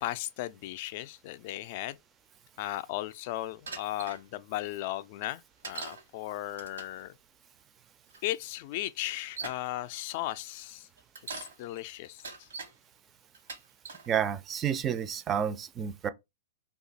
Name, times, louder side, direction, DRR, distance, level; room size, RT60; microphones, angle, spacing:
voice 1, 0.0-2.0 2.6-7.2 8.2-10.9 11.3-12.5, left 15 dB, 50° left, 0.3 m, -36 dB
Bicycle, 3.7-4.2 5.6-6.0 6.5-7.0 8.1-8.2 9.0-9.7 11.0-11.6 12.0-12.7 13.3-14.1 14.7-15.1, right 5 dB, 90° right, 1.1 m, -42 dB
voice 2, 14.1-16.1, right 8 dB, 25° right, 0.4 m, -30 dB
2.8 x 2.3 x 4.0 m
hypercardioid pair, 135°, 0 cm